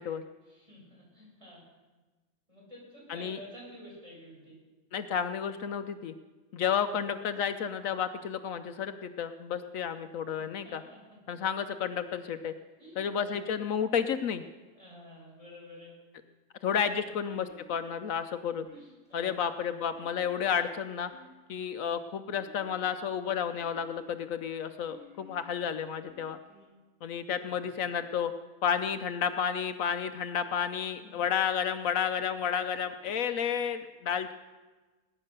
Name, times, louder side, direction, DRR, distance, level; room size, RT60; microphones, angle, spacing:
voice 1, 0.4-1.6 2.5-4.6 6.8-7.0 10.4-10.8 11.0-11.2 12.8-13.5 14.7-16.0 17.0-17.4 18.7-19.4 27.1-27.9 31.0-31.4, equal, 20° right, -5 dB, 6.8 m, -51 dB
voice 2, 4.9-6.1 6.5-10.8 11.3-12.5 13.0-14.4 16.6-18.7 19.1-21.1 21.5-26.4 27.0-28.3 28.6-34.3, left 7 dB, 75° left, 9 dB, 1.1 m, -31 dB
sound 1, 17.5-18.1 18.7-19.2 19.9-20.6 21.0-21.7 22.4-23.1 23.6-24.2 24.8-25.5 26.1-26.7, left 2 dB, 20° left, 4.7 m, -56 dB
20.0 x 9.9 x 6.7 m, 1.3 s
omnidirectional pair, 1.5 m